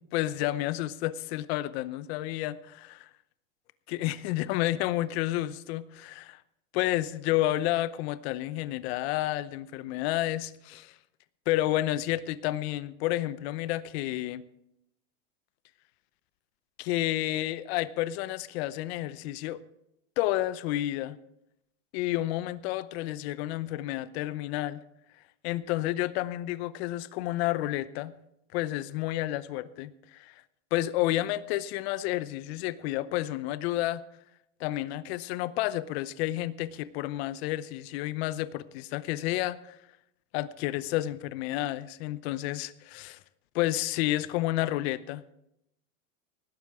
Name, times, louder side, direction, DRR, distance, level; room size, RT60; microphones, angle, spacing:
voice 1, 0.1-3.1 3.9-6.4 6.7-11.0 11.5-14.4 16.8-19.6 20.2-21.2 21.9-24.8 25.4-28.1 28.5-30.4 30.7-34.0 34.6-39.8 40.3-43.2 43.5-45.2, left 15 dB, 55° left, 16 dB, 0.8 m, -30 dB
19.0 x 12.5 x 3.6 m, 0.82 s
supercardioid pair, 130°, 37 cm